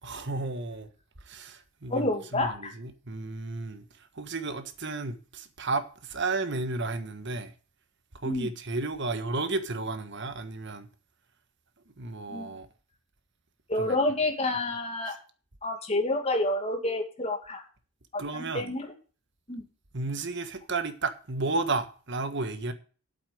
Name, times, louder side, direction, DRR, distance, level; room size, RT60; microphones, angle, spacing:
voice 1, 0.0-0.9 1.2-7.5 8.1-10.9 12.0-12.7 13.8-14.0 18.2-18.7 19.9-22.7, right 3 dB, 60° right, 1.5 m, -33 dB
voice 2, 1.9-2.7 8.3-8.5 12.3-12.5 13.7-15.2 15.6-17.6 18.1-18.9 19.5-19.6, left 2 dB, 30° left, 2.5 m, -29 dB
8.5 x 8.1 x 7.9 m
head